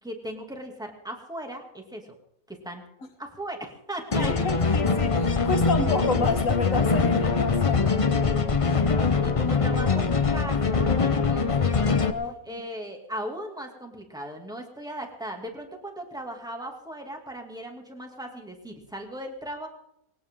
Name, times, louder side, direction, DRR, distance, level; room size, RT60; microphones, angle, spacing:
voice 1, 0.0-2.2 2.5-2.8 3.2-4.3 8.2-12.0 12.5-19.7, right 1 dB, 5° right, 2.5 m, -38 dB
sound 1, 4.1-12.1, left 4 dB, 30° left, 0.7 m, -23 dB
voice 2, 4.2-7.9 12.1-12.6, left 4 dB, 60° left, 2.0 m, -29 dB
21.0 x 17.5 x 3.8 m
omnidirectional pair, 1.5 m